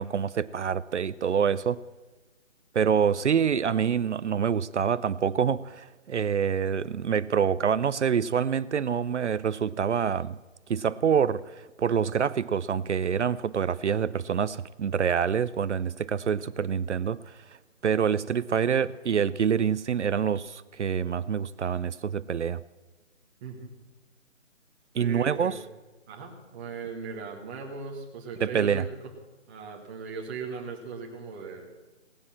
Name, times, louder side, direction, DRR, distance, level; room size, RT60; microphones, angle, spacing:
voice 1, 0.0-1.8 2.7-10.4 10.7-17.4 17.8-22.6 24.9-25.6 28.4-28.9, right 7 dB, 65° right, 16 dB, 0.6 m, -26 dB
voice 2, 23.4-23.7 24.9-25.6 26.1-28.9 29.5-31.7, right 5 dB, 10° right, 0 dB, 0.9 m, -38 dB
17.5 x 9.7 x 7.4 m, 1.2 s
figure-of-eight pair, 160°, 38 cm